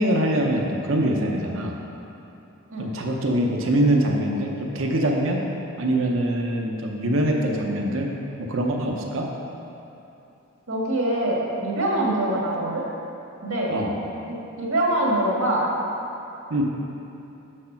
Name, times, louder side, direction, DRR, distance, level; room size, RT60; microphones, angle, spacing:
voice 1, 0.0-1.8 2.8-5.4 5.8-8.1 8.4-9.3 13.7-14.0 16.5-16.6, right 1 dB, 65° right, 1 dB, 0.8 m, -23 dB
voice 2, 10.7-12.8 13.4-13.7 14.3-15.6, right 1 dB, 85° right, -3 dB, 1.8 m, -24 dB
6.5 x 6.4 x 5.8 m, 2.8 s
head